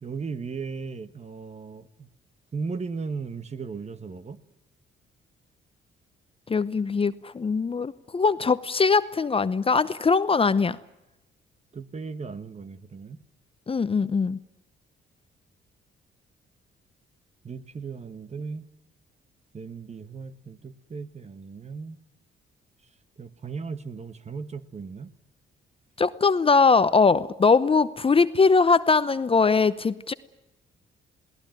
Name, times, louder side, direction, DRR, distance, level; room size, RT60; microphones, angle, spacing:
voice 1, 0.0-2.1 2.5-4.4 11.7-13.2 17.4-18.7 19.5-22.0 23.2-25.1, right 5 dB, 35° right, 13 dB, 1.4 m, -36 dB
voice 2, 6.5-10.8 13.7-14.4 26.0-30.1, left 4 dB, 30° left, 15 dB, 0.8 m, -21 dB
21.5 x 18.0 x 9.1 m, 0.95 s
cardioid pair, 90°, 20 cm